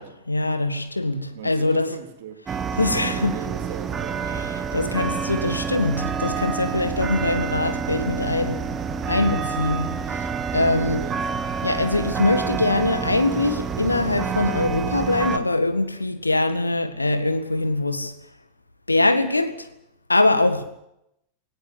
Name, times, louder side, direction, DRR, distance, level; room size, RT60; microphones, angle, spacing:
voice 1, 0.3-1.9 2.8-3.4 4.3-8.7 9.1-11.1 11.6-18.1 18.9-19.7 20.1-20.6, left 2 dB, 80° left, 1.9 m, -23 dB
voice 2, 1.3-2.4 2.9-4.3 10.5-11.3, right 9 dB, 55° right, 3.3 m, -38 dB
sound 1, 2.5-15.4, right 6 dB, 20° right, 1.6 m, -28 dB
19.0 x 17.5 x 9.6 m
figure-of-eight pair, 90°, 0 cm